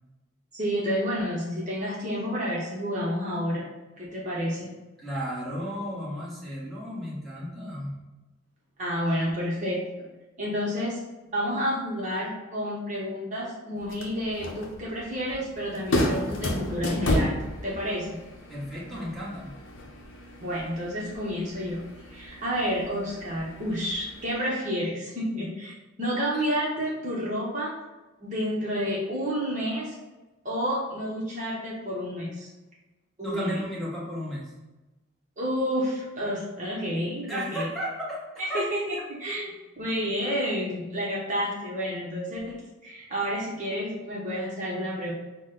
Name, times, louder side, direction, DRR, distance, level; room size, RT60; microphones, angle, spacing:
voice 1, 0.5-3.7 4.0-4.7 8.8-10.1 10.4-11.0 11.3-17.4 17.6-18.2 20.4-21.8 22.1-25.7 26.0-27.7 28.2-30.0 30.4-32.5 33.2-33.6 35.4-37.7 38.4-42.5 42.8-45.1, equal, 35° right, -5 dB, 0.8 m, -30 dB
voice 2, 5.0-7.9 18.5-19.5 26.3-26.4 33.2-34.5 37.3-38.2 38.5-38.7, equal, ahead, -7 dB, 1.0 m, -33 dB
sound 1, 13.8-24.3, left 1 dB, 65° left, 0.7 m, -33 dB
6.0 x 2.1 x 3.8 m, 1.1 s
head